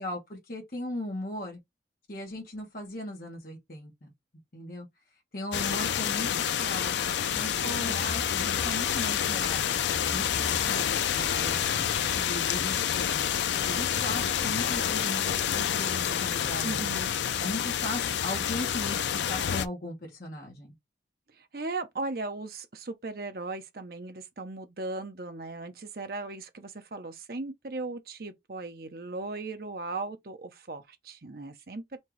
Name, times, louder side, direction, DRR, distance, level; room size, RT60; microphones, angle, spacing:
voice 1, 0.0-1.6 2.1-4.1 4.5-4.9 5.3-7.0 7.3-9.7 10.1-11.8 12.2-13.3 13.6-17.0 17.4-20.7, left 1 dB, 55° left, 1.6 m, -38 dB
sound 1, 5.5-19.7, left 9 dB, 75° left, 0.4 m, -28 dB
sound 2, 7.3-15.4, equal, 15° right, 0.8 m, -45 dB
voice 2, 7.6-7.9 16.6-17.1 21.4-32.0, right 3 dB, 55° right, 0.8 m, -37 dB
4.4 x 2.8 x 3.2 m
head